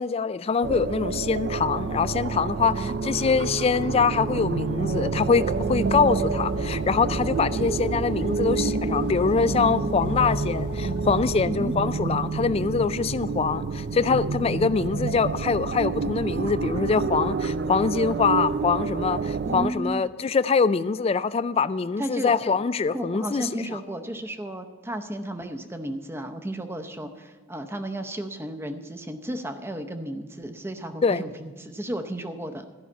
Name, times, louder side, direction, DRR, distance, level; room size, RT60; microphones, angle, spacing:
voice 1, 0.0-23.8 31.0-31.2, left 5 dB, 30° left, 0.3 m, -24 dB
sound 1, 0.6-19.7, right 4 dB, 55° right, 0.4 m, -28 dB
voice 2, 2.6-2.9 7.5-7.8 11.5-11.7 19.5-20.0 22.0-22.3 22.9-32.6, right 1 dB, 10° right, 0.7 m, -33 dB
sound 2, 5.4-11.4, equal, 60° left, 1.7 m, -35 dB
13.5 x 5.6 x 8.4 m
head